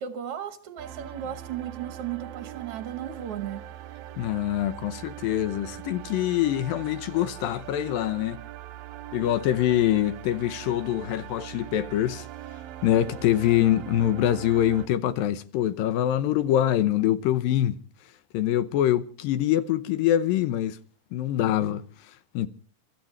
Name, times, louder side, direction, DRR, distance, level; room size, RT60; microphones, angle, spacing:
voice 1, 0.0-3.6, right 10 dB, 65° right, 1.5 m, -35 dB
sound 1, 0.8-14.9, right 13 dB, 90° right, 2.7 m, -42 dB
voice 2, 4.2-8.4 9.1-12.3 12.8-17.7 18.3-20.8 21.1-21.8 22.3-22.5, left 12 dB, 85° left, 2.6 m, -24 dB
29.5 x 13.5 x 3.2 m
omnidirectional pair, 4.0 m